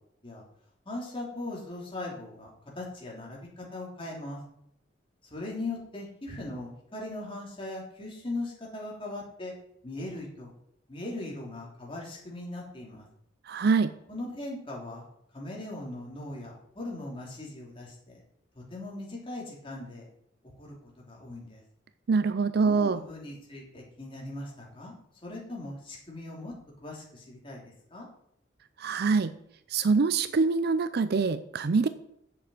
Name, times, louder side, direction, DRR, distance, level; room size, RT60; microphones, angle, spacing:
voice 1, 0.8-2.5 2.7-4.4 5.2-9.5 9.8-10.5 10.9-13.1 14.1-15.1 15.3-18.2 18.5-20.1 20.6-21.6 22.6-24.9 25.2-26.5 26.8-28.1, left 2 dB, 30° left, -3 dB, 3.3 m, -39 dB
voice 2, 13.5-13.9 22.1-23.0 28.8-29.3 29.7-31.9, right 4 dB, 55° right, 12 dB, 0.5 m, -24 dB
7.6 x 6.9 x 7.7 m, 0.71 s
head